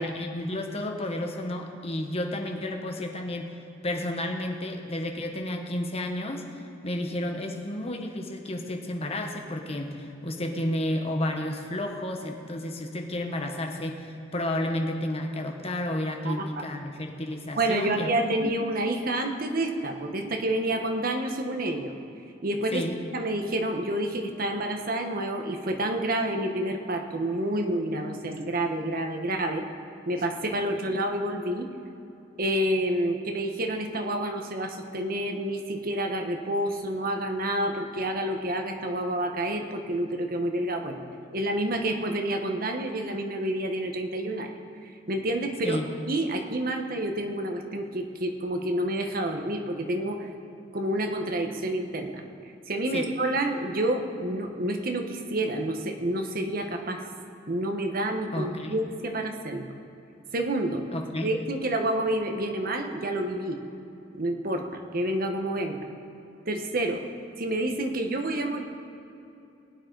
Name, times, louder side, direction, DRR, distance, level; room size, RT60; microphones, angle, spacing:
voice 1, 0.0-3.5 3.8-18.1 18.4-18.5 22.7-23.0 30.8-30.9 45.6-45.9 52.9-53.1 58.3-58.7 60.9-61.3, left 1 dB, 35° left, 3 dB, 1.2 m, -31 dB
voice 2, 17.6-22.0 22.4-29.7 30.1-31.7 32.4-41.0 41.3-44.5 44.8-45.8 46.1-50.3 50.7-52.2 52.7-57.1 57.5-59.7 60.3-60.8 61.2-63.6 64.1-65.8 66.5-67.0 67.4-68.6, right 1 dB, 50° right, 4 dB, 1.2 m, -29 dB
20.0 x 8.9 x 4.0 m, 2.8 s
head